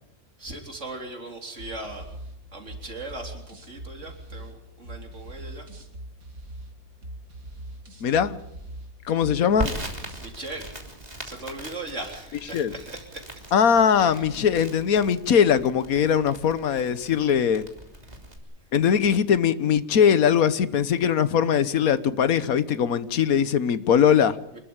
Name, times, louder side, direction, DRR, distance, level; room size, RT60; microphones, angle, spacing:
voice 1, 0.4-2.0 2.5-5.6 10.2-10.8 11.2-13.4, right 2 dB, 60° right, 2 dB, 4.2 m, -38 dB
sound 1, 1.6-10.3, right 1 dB, 75° right, 3.1 m, -42 dB
voice 2, 8.0-8.4 9.0-9.7 12.3-12.8 13.5-17.7 18.7-24.4, left 8 dB, 85° left, 14 dB, 1.5 m, -21 dB
Crackle, 9.6-18.4, right 1 dB, 30° right, 3.3 m, -39 dB
26.5 x 13.0 x 8.9 m, 0.83 s
omnidirectional pair, 1.5 m